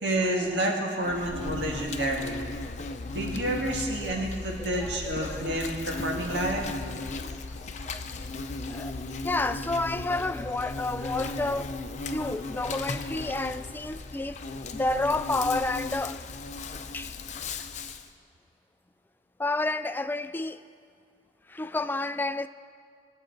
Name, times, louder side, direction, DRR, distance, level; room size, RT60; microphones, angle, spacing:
voice 1, 0.0-2.5 3.1-6.7, right 1 dB, 85° right, 1.8 m, -29 dB
Insect, 1.0-18.1, left 3 dB, 45° left, 0.6 m, -36 dB
voice 2, 3.9-4.3 4.6-5.5 7.2-7.4 7.8-8.0 8.7-11.8 12.0-14.4 14.7-16.2 16.9-17.1 19.4-20.6 21.5-22.5, left 2 dB, 10° left, 0.3 m, -30 dB
21.0 x 7.6 x 4.6 m
head